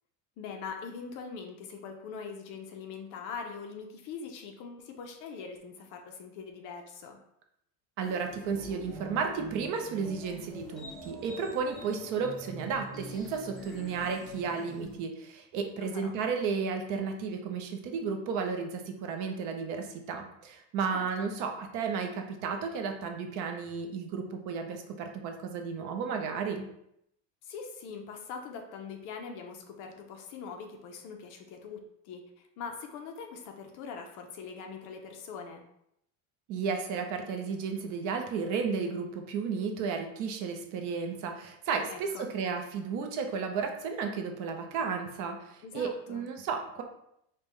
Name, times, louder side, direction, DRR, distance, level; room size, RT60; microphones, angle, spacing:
voice 1, 0.4-7.2 15.8-16.2 20.9-21.3 27.4-35.6 41.9-42.3 45.6-46.2, left 5 dB, 50° left, 4 dB, 0.6 m, -42 dB
sound 1, 8.0-15.0, right 1 dB, ahead, 0.5 m, -45 dB
voice 2, 8.0-26.7 36.5-46.8, right 5 dB, 50° right, 4 dB, 0.5 m, -33 dB
5.2 x 2.2 x 3.1 m, 0.76 s
cardioid pair, 170°, 41 cm